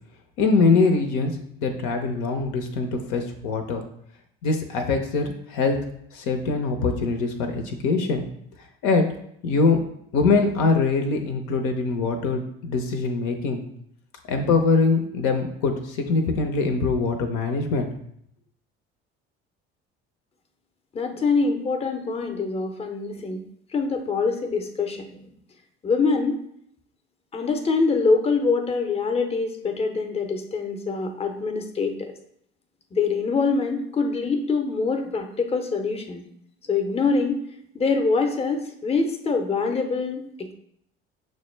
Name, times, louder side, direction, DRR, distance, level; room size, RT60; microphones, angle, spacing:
voice 1, 0.4-1.3 1.6-3.8 4.4-5.8 6.1-8.2 8.8-9.0 9.4-9.8 10.1-13.6 14.3-17.9, left 4 dB, 65° left, 4 dB, 0.6 m, -23 dB
voice 2, 20.9-23.4 23.7-25.2 25.8-26.4 27.3-32.1 32.9-36.2 36.7-37.4 37.7-40.5, left 4 dB, 20° left, 5 dB, 0.6 m, -24 dB
6.2 x 2.1 x 3.1 m, 0.71 s
hypercardioid pair, 60°, 30 cm